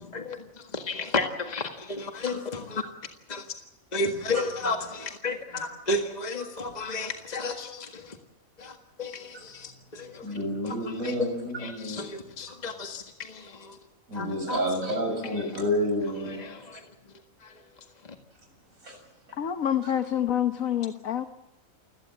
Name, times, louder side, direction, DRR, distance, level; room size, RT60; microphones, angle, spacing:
voice 1, 0.0-2.8 3.3-3.4 3.9-8.2 8.6-10.4 10.6-11.3 11.6-13.8 14.1-14.6 15.2-15.5 16.2-16.8 17.4-17.5, left 3 dB, 30° left, 5 dB, 1.9 m, -33 dB
voice 2, 10.2-12.1 14.1-16.5 18.8-18.9 19.8-19.9, equal, 75° right, 4 dB, 7.3 m, -29 dB
voice 3, 19.4-21.2, left 10 dB, 80° left, 8 dB, 1.5 m, -27 dB
30.0 x 17.0 x 7.6 m, 0.99 s
omnidirectional pair, 1.4 m